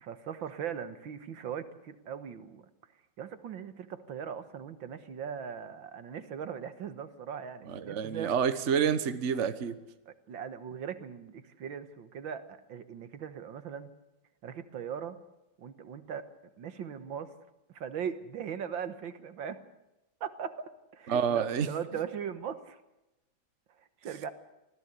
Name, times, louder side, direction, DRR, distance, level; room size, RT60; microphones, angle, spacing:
voice 1, 0.0-2.6 3.2-8.3 10.1-13.9 14.4-15.2 15.6-16.3 16.6-17.3 17.7-19.6 20.2-22.8 24.0-24.3, right 8 dB, 80° right, 11 dB, 2.1 m, -39 dB
voice 2, 7.7-9.8 21.1-21.7, right 7 dB, 40° right, 11 dB, 1.4 m, -28 dB
25.0 x 16.5 x 8.3 m, 0.95 s
omnidirectional pair, 2.1 m